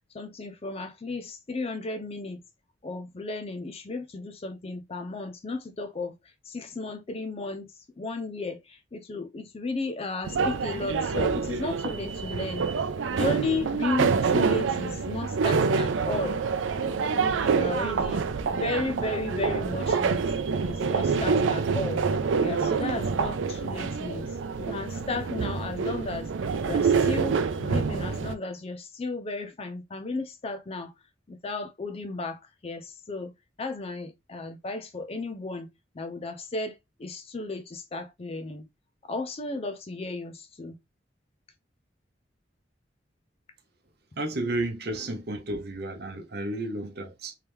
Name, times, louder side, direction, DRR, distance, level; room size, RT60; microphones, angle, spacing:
voice 1, 0.1-2.4 2.8-6.2 6.4-12.7 13.1-16.4 16.8-18.2 18.5-20.2 20.6-22.0 22.4-26.3 26.6-30.9 31.3-33.3 33.6-35.7 35.9-38.7 39.1-40.8, left 3 dB, 30° left, 0.4 m, -34 dB
sound 1, 10.2-28.4, right 5 dB, 85° right, 0.4 m, -27 dB
voice 2, 44.2-47.3, right 1 dB, 55° right, 0.9 m, -32 dB
3.2 x 3.0 x 3.4 m
head